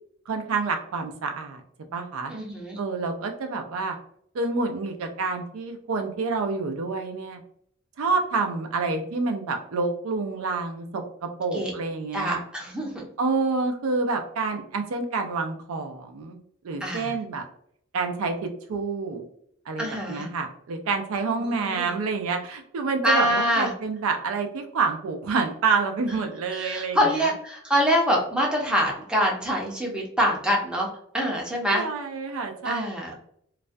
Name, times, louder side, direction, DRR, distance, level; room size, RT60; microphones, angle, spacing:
voice 1, 0.3-1.6 1.9-2.3 2.8-4.0 4.3-7.4 8.0-12.4 13.2-16.4 16.6-17.5 17.9-19.2 19.7-27.3 31.7-32.8, right 4 dB, 75° right, 5 dB, 0.4 m, -28 dB
voice 2, 2.3-2.8 11.5-11.7 12.1-13.0 16.8-17.1 19.8-20.3 21.4-21.9 23.0-23.7 26.5-30.9 31.1-31.8 32.6-33.1, equal, 5° right, -2 dB, 0.5 m, -25 dB
2.3 x 2.1 x 2.5 m, 0.67 s
head